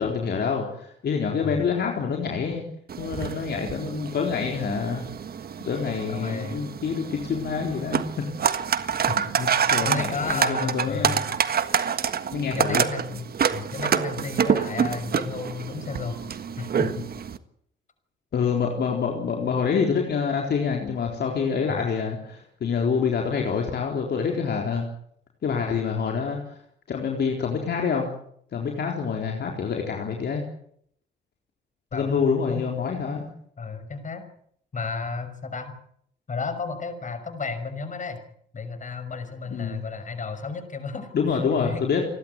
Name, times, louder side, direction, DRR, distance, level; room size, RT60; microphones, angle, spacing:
voice 1, 0.0-2.6 3.0-5.0 5.7-8.1 9.4-11.2 12.3-12.9 18.3-24.9 25.4-26.6 26.9-28.1 28.5-30.4 31.9-33.3 39.5-39.8 41.1-42.0, left 6 dB, 55° left, 1 dB, 4.0 m, -26 dB
sound 1, 2.9-17.4, right 7 dB, 50° right, 1.6 m, -27 dB
voice 2, 6.1-6.7 9.1-9.2 9.8-11.3 12.5-17.1 21.7-21.8 31.9-32.7 33.6-34.2 34.7-35.7 36.3-38.2 38.5-41.1 41.6-41.8, left 4 dB, 40° left, 8 dB, 6.0 m, -33 dB
29.5 x 12.0 x 9.6 m, 0.68 s
cardioid pair, 90°, 20 cm